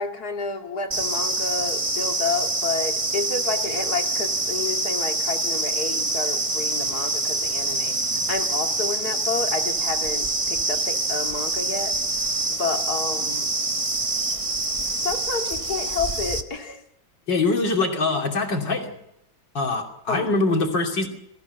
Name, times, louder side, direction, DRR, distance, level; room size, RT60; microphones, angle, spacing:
voice 1, 0.0-13.5 14.9-16.8 20.1-20.3, left 4 dB, 60° left, 4 dB, 2.7 m, -30 dB
sound 1, 0.9-16.4, right 3 dB, 20° right, 1.1 m, -26 dB
voice 2, 17.3-19.0 19.6-21.1, left 3 dB, 85° left, 2 dB, 3.6 m, -23 dB
23.5 x 15.0 x 8.0 m, 0.83 s
omnidirectional pair, 1.9 m